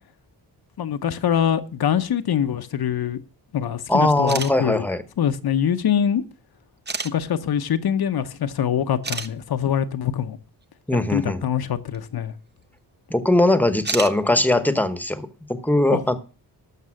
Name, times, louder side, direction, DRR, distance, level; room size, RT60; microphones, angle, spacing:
voice 1, 0.8-3.2 3.5-4.9 5.2-6.2 7.1-10.4 10.9-12.3 15.9-16.2, left 9 dB, 60° left, 0.9 m, -24 dB
voice 2, 3.9-5.0 10.9-11.5 13.1-16.2, left 1 dB, 5° left, 1.1 m, -20 dB
sound 1, 4.2-4.5 5.6-5.7 6.9-7.1 8.5-8.6 9.0-9.3 11.9-12.0 13.8-14.2, right 4 dB, 25° right, 0.8 m, -29 dB
12.5 x 6.7 x 6.3 m
wide cardioid pair, 125°, 42 cm